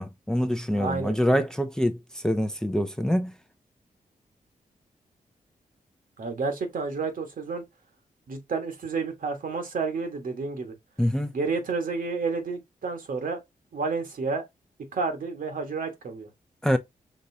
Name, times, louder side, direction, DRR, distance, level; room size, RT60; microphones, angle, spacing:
voice 1, 0.0-3.3 11.0-11.3 16.6-16.8, equal, 5° left, 0.5 m, -25 dB
voice 2, 0.8-1.2 6.2-7.6 8.3-10.7 11.3-13.4 13.7-14.4 14.9-16.3, right 4 dB, 70° right, 1.5 m, -30 dB
5.3 x 3.0 x 2.7 m
cardioid pair, 70°, 15 cm